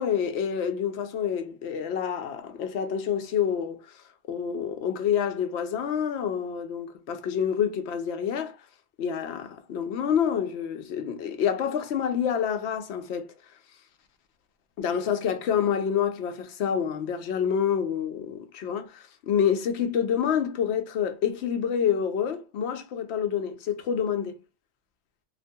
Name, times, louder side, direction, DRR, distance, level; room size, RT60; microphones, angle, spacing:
voice 1, 0.0-3.8 4.3-8.6 9.0-13.3 14.8-24.3, left 8 dB, 85° left, 0.9 m, -27 dB
2.5 x 2.2 x 2.6 m
omnidirectional pair, 1.1 m